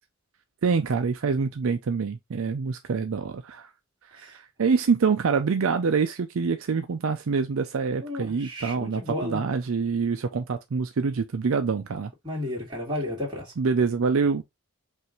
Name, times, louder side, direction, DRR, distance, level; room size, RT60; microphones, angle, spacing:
voice 1, 0.6-3.7 4.1-12.1 13.6-14.4, right 5 dB, 65° right, 0.4 m, -26 dB
voice 2, 8.0-9.4 12.2-13.5, left 1 dB, 20° right, 2.1 m, -32 dB
5.5 x 2.6 x 3.0 m
head